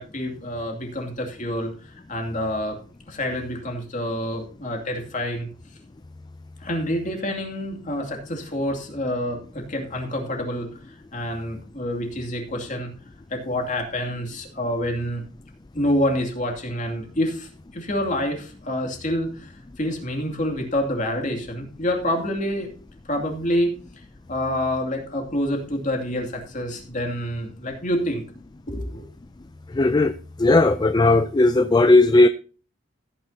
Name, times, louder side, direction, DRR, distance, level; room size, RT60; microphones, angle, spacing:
voice 1, 0.0-2.8 3.1-5.5 6.6-12.9 13.3-15.2 15.7-22.7 23.1-23.7 24.3-28.2 28.7-29.1, left 1 dB, 40° left, 2 dB, 2.6 m, -27 dB
voice 2, 29.7-32.3, left 2 dB, 20° left, 11 dB, 0.4 m, -17 dB
16.0 x 9.2 x 2.8 m, 0.38 s
head